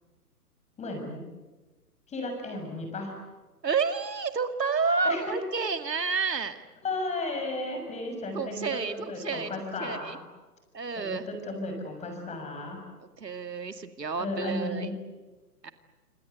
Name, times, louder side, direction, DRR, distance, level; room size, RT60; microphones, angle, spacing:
voice 1, 0.8-1.2 2.1-3.1 5.0-5.3 6.8-10.2 11.0-12.8 14.2-15.0, left 2 dB, 15° left, 4 dB, 6.8 m, -34 dB
voice 2, 3.6-6.6 8.3-9.5 9.8-10.2 10.7-11.3 13.2-14.9 15.6-15.7, right 5 dB, 85° right, 9 dB, 2.3 m, -30 dB
27.0 x 26.5 x 8.2 m, 1.2 s
hypercardioid pair, 135°, 48 cm